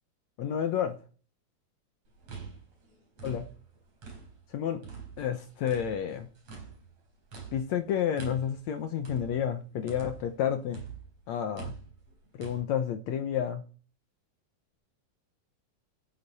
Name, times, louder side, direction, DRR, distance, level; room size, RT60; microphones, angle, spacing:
voice 1, 0.4-1.0 3.2-3.4 4.5-4.8 5.2-6.3 7.5-10.8 11.3-11.7 12.4-13.6, left 9 dB, 70° left, 2.1 m, -30 dB
sound 1, 2.1-4.5 4.8-10.4 10.7-12.6, right 6 dB, 55° right, 5.3 m, -45 dB
11.5 x 10.5 x 4.2 m
omnidirectional pair, 3.6 m